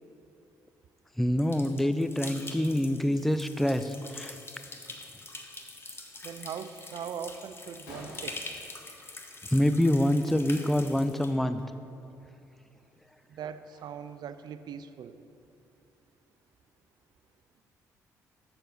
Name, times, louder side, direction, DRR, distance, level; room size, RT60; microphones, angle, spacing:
voice 1, 1.2-4.4 9.5-11.6, left 1 dB, 5° left, 11 dB, 0.4 m, -26 dB
sound 1, 1.4-11.3, left 2 dB, 30° left, 1.0 m, -44 dB
voice 2, 6.2-8.4 13.3-15.2, right 7 dB, 60° right, 12 dB, 0.4 m, -40 dB
Gunshot gunfire, 7.9-9.5 9.8-10.2 10.4-10.6 11.4-11.6 12.2-12.3 12.7-14.3, left 1 dB, 85° left, 1.4 m, -50 dB
6.8 x 5.9 x 5.2 m, 2.6 s
hypercardioid pair, 50°, 8 cm